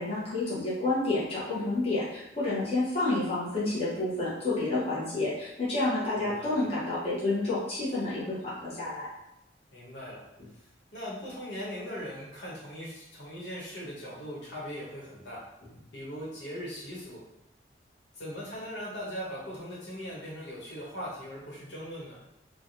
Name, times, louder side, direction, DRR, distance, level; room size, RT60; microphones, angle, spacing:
voice 1, 0.0-9.1, left 2 dB, 35° left, -9 dB, 0.9 m, -29 dB
voice 2, 6.2-6.7 9.7-10.2 10.9-15.4 15.9-17.2 18.1-22.2, equal, 85° left, -6 dB, 1.0 m, -39 dB
3.3 x 2.1 x 2.6 m, 0.88 s
head